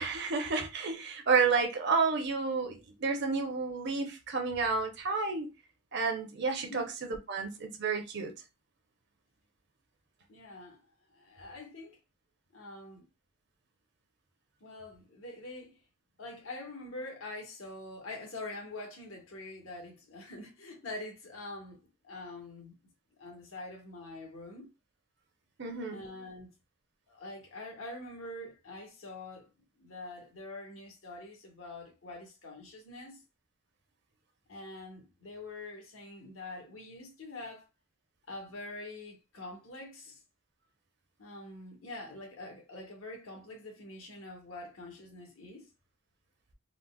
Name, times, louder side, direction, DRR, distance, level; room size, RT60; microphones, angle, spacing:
voice 1, 0.0-5.5 5.9-6.8 7.3-8.3 25.6-26.0, right 4 dB, 55° right, 0.7 m, -30 dB
voice 2, 10.3-10.8 11.1-11.9 12.5-13.1 14.6-15.8 16.2-22.8 23.2-24.7 25.9-26.5 27.1-29.5 29.8-33.2 34.5-37.7 38.3-40.2 41.2-45.7, left 2 dB, 75° left, 1.2 m, -45 dB
3.8 x 2.0 x 2.3 m
head